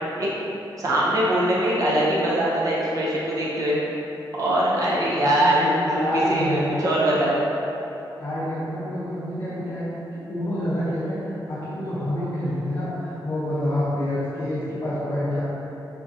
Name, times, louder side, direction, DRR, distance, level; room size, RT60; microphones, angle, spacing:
voice 1, 0.8-3.8 4.4-7.4, right 1 dB, 45° right, -7 dB, 0.7 m, -22 dB
voice 2, 4.4-4.8 5.2-6.7 8.2-10.0 10.3-15.4, equal, 50° left, -12 dB, 0.7 m, -28 dB
3.6 x 2.8 x 2.5 m, 2.9 s
wide cardioid pair, 175°, 8 cm